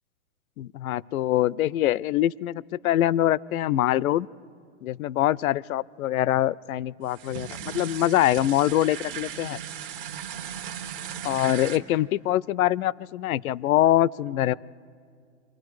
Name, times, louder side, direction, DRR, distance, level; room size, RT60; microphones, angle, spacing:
voice 1, 0.6-4.3 4.8-9.6 11.2-14.5, left 13 dB, 85° left, 23 dB, 0.5 m, -24 dB
sound 1, 7.1-11.8, right 9 dB, 40° right, 1.2 m, -37 dB
28.5 x 23.0 x 4.8 m, 2.2 s
hypercardioid pair, 160°, 41 cm